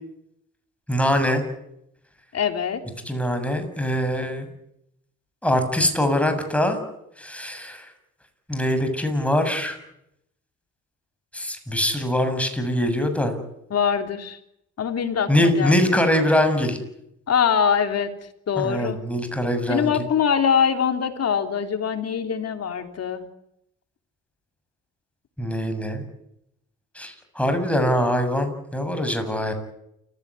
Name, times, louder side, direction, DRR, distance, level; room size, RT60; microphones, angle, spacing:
voice 1, 0.9-1.4 3.1-4.5 5.4-6.8 7.2-7.9 8.5-9.8 11.3-13.4 15.3-16.8 18.6-19.9 25.4-26.0 27.0-29.5, left 1 dB, 5° left, 7 dB, 7.2 m, -23 dB
voice 2, 2.3-2.8 13.7-14.4 14.8-15.8 17.3-18.1 18.5-19.0 19.7-23.2, left 7 dB, 55° left, 6 dB, 3.4 m, -23 dB
29.0 x 16.5 x 9.8 m, 0.80 s
cardioid pair, 90°, 30 cm